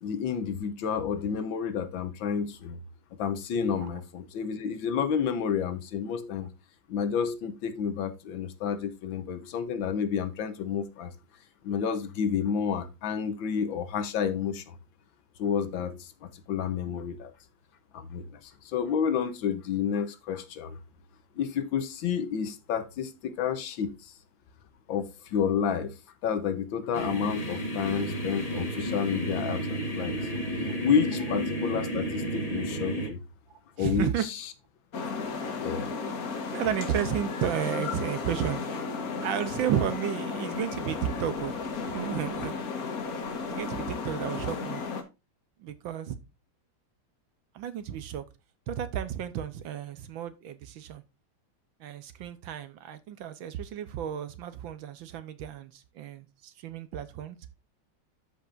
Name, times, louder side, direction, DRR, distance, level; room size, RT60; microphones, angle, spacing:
voice 1, 0.0-2.8 3.2-6.5 6.9-11.1 11.6-14.7 15.4-17.3 17.9-20.8 21.4-24.1 24.9-25.9 26.2-30.3 30.8-33.2 33.8-34.4 35.6-36.0, left 7 dB, 70° left, 1.5 m, -30 dB
sound 1, 26.9-33.1, right 1 dB, 20° left, 1.1 m, -32 dB
voice 2, 33.8-34.3 36.5-38.6 39.2-41.6 41.9-42.5 43.4-44.8 45.6-46.2 47.5-48.2 48.7-51.0 51.8-57.4, right 10 dB, 70° right, 1.5 m, -32 dB
sound 2, 34.9-45.0, left 4 dB, 45° left, 1.6 m, -34 dB
13.0 x 5.3 x 2.5 m
omnidirectional pair, 2.4 m